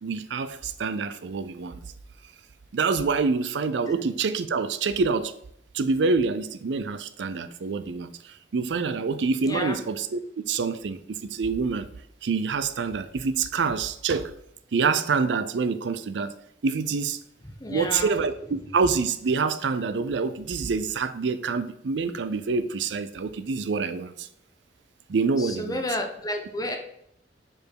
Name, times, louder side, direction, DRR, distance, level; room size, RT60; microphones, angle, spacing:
voice 1, 0.0-1.8 2.7-5.3 5.7-11.9 12.2-14.3 14.7-16.3 16.6-17.2 17.7-24.3 25.1-25.8, right 4 dB, 80° right, 0.5 m, -26 dB
voice 2, 9.4-9.8 17.6-18.2 25.4-26.8, left 1 dB, 20° left, 0.9 m, -31 dB
5.0 x 4.7 x 4.6 m
head